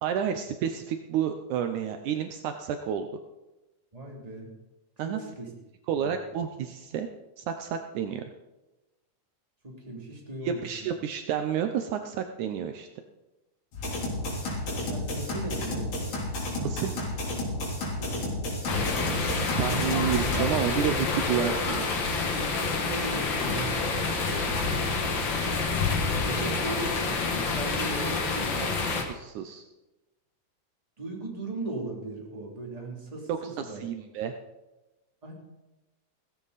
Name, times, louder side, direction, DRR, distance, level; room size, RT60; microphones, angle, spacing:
voice 1, 0.0-3.1 5.0-5.2 5.9-7.1 7.4-8.2 10.4-12.9 16.6-17.0 19.1-21.8 29.0-29.6 33.3-34.3, right 9 dB, 75° right, 6 dB, 2.1 m, -30 dB
voice 2, 3.9-4.5 5.0-5.5 5.9-6.1 9.6-10.6 14.7-16.2 16.5-16.9 18.0-18.3 18.7-19.1 22.6-24.0 26.1-28.6 31.0-33.8 35.2-35.3, right 2 dB, 10° right, -2 dB, 2.8 m, -38 dB
sound 1, 13.7-20.4, left 1 dB, 75° left, 5.1 m, -32 dB
sound 2, 18.7-29.0, left 4 dB, 45° left, 2.0 m, -28 dB
16.5 x 15.0 x 4.1 m, 1.0 s
omnidirectional pair, 3.7 m